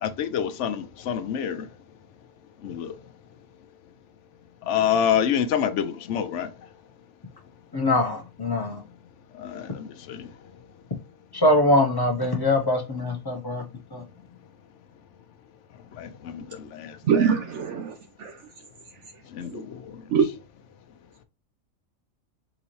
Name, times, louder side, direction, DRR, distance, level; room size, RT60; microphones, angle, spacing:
voice 1, 0.0-1.7 2.6-3.0 4.6-6.5 9.3-10.3 15.9-17.0 19.3-20.0, left 8 dB, 70° left, 0.9 m, -27 dB
voice 2, 7.7-8.7 11.4-13.6 13.9-14.0, left 1 dB, 25° left, 0.5 m, -22 dB
voice 3, 17.0-18.4 19.4-19.6 20.1-20.3, right 7 dB, 65° right, 0.9 m, -24 dB
4.0 x 3.9 x 3.1 m
omnidirectional pair, 1.4 m